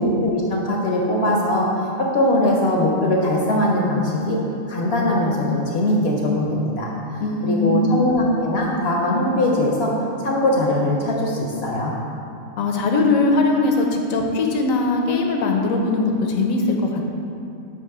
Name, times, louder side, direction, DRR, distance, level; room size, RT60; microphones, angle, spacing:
voice 1, 0.0-4.4 4.7-6.9 7.4-9.9 10.2-11.9, left 1 dB, 60° left, -2 dB, 0.7 m, -21 dB
voice 2, 7.2-8.0 12.6-17.1, left 2 dB, 75° left, 2 dB, 1.0 m, -20 dB
6.8 x 2.9 x 4.7 m, 2.7 s
omnidirectional pair, 1.5 m